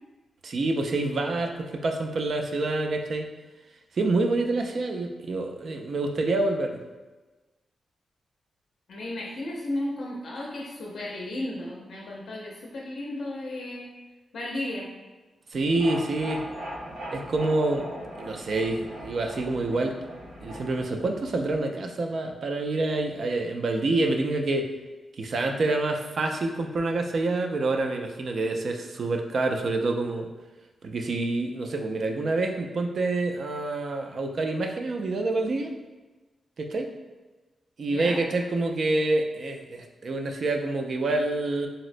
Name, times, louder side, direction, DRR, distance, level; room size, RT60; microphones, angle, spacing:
voice 1, 0.4-3.3 4.0-6.8 15.5-16.4 17.1-17.9 18.2-19.9 20.4-24.7 25.2-30.3 30.8-35.7 36.6-36.9 37.8-41.7, right 2 dB, 55° right, 4 dB, 0.3 m, -27 dB
voice 2, 8.9-13.9 14.3-14.9 37.9-38.2, left 1 dB, 70° left, -3 dB, 0.5 m, -34 dB
sound 1, 15.5-21.6, equal, 85° right, 0.9 m, -40 dB
3.9 x 2.0 x 2.5 m, 1.2 s
wide cardioid pair, 140°, 0 cm